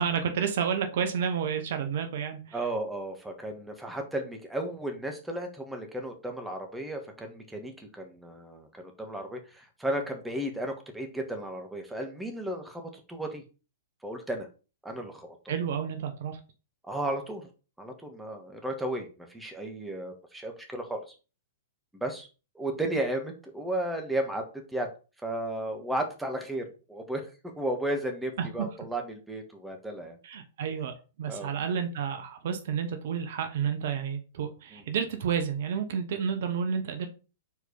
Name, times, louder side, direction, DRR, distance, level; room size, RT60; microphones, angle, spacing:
voice 1, 0.0-2.6 15.5-16.4 28.4-28.5 30.2-37.1, right 7 dB, 60° right, 7 dB, 1.0 m, -30 dB
voice 2, 2.5-13.4 14.0-14.5 14.8-15.3 16.9-17.5 17.8-21.1 22.0-22.3 22.5-24.9 25.2-27.3 27.6-30.2 31.3-31.5 34.7-34.8, right 1 dB, 5° right, 3 dB, 1.5 m, -34 dB
4.7 x 4.4 x 5.2 m, 0.33 s
figure-of-eight pair, 105°, 0 cm